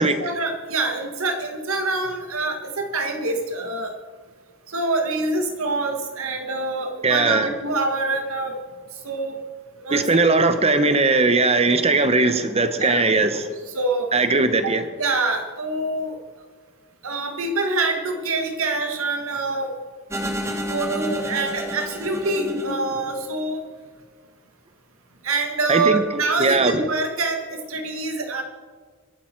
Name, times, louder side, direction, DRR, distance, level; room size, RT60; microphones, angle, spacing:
voice 1, 0.0-3.9 4.7-8.6 9.0-9.4 9.8-10.2 12.8-13.0 13.7-14.1 14.6-14.7 15.0-16.2 17.0-19.7 20.7-23.7 25.2-28.4, right 3 dB, 70° right, 4 dB, 1.8 m, -25 dB
voice 2, 7.0-7.5 9.9-13.5 14.1-14.8 25.7-26.0 26.4-26.8, right 3 dB, 30° right, 10 dB, 0.9 m, -19 dB
sound 1, 20.1-23.5, equal, 15° right, 1.3 m, -30 dB
22.0 x 8.9 x 4.6 m, 1.5 s
head